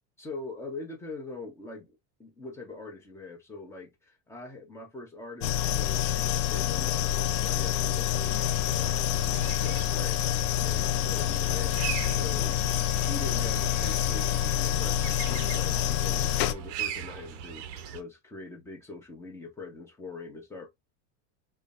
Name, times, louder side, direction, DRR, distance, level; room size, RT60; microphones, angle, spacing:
voice 1, 0.2-20.7, left 3 dB, 5° left, 0.8 m, -43 dB
sound 1, 5.4-16.5, left 12 dB, 55° left, 0.5 m, -27 dB
sound 2, 8.1-18.0, right 8 dB, 45° right, 0.6 m, -40 dB
sound 3, 12.1-15.3, left 5 dB, 25° left, 1.3 m, -49 dB
5.1 x 2.2 x 2.4 m
supercardioid pair, 160°, 35 cm